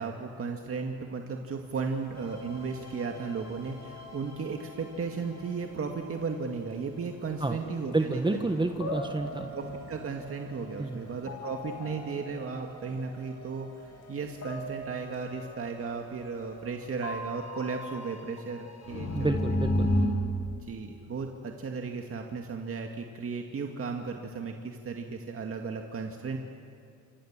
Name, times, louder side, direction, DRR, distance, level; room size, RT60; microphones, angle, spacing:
voice 1, 0.0-8.5 9.5-19.3 20.6-26.4, right 5 dB, 45° right, 3 dB, 2.1 m, -35 dB
sound 1, 1.6-17.3, left 4 dB, 85° left, 3.2 m, -53 dB
sound 2, 2.2-6.0 7.2-7.7 8.2-20.1, left 1 dB, 60° left, 6.3 m, -36 dB
voice 2, 7.9-9.5 10.8-11.0 19.1-19.9, right 2 dB, 15° right, 6 dB, 1.4 m, -29 dB
28.0 x 25.5 x 7.5 m, 2.5 s
cardioid pair, 90°, 30 cm